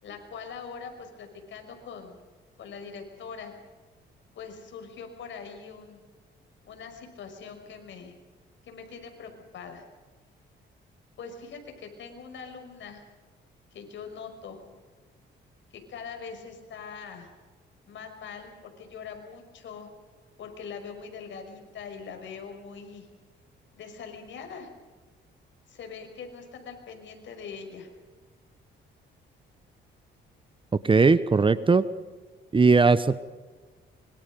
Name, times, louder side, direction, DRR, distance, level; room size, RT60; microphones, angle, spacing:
voice 1, 0.0-2.2 2.6-3.5 4.3-6.0 6.6-8.1 8.6-9.8 11.2-13.0 13.7-14.6 15.7-17.3 17.8-19.9 20.4-23.1 23.7-24.7 25.7-27.9, left 6 dB, 70° left, 5 dB, 5.7 m, -42 dB
voice 2, 30.8-31.9 32.5-33.2, right 4 dB, 25° right, 15 dB, 1.0 m, -19 dB
26.0 x 24.0 x 5.3 m, 1.4 s
cardioid pair, 90°, 20 cm